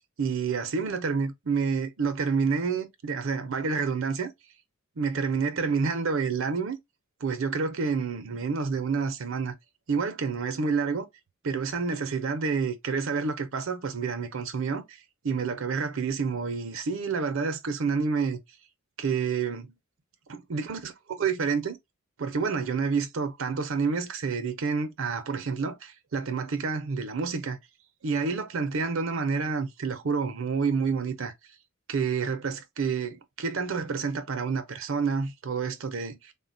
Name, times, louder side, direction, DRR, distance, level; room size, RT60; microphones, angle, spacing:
voice 1, 0.2-4.3 5.0-6.8 7.2-9.5 9.9-11.1 11.4-15.0 15.2-18.4 19.0-19.7 20.3-21.8 22.2-27.6 28.0-31.3 31.9-36.3, right 5 dB, 65° right, 0.6 m, -29 dB
3.6 x 2.2 x 2.5 m
head